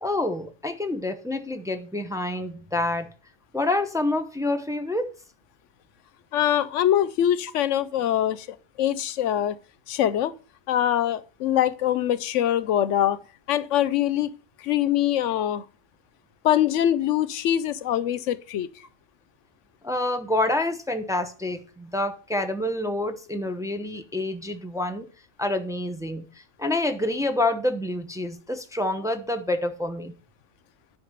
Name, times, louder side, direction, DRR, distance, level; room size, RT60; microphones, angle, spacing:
voice 1, 0.0-3.1 3.5-5.1 19.8-25.1 25.4-26.3 26.6-30.1, left 2 dB, 5° right, 0.8 m, -27 dB
voice 2, 6.3-8.5 8.8-9.6 9.9-10.3 10.7-13.2 13.5-14.3 14.6-15.6 16.4-18.7, left 11 dB, 85° left, 1.0 m, -23 dB
9.9 x 4.8 x 6.6 m
omnidirectional pair, 1.2 m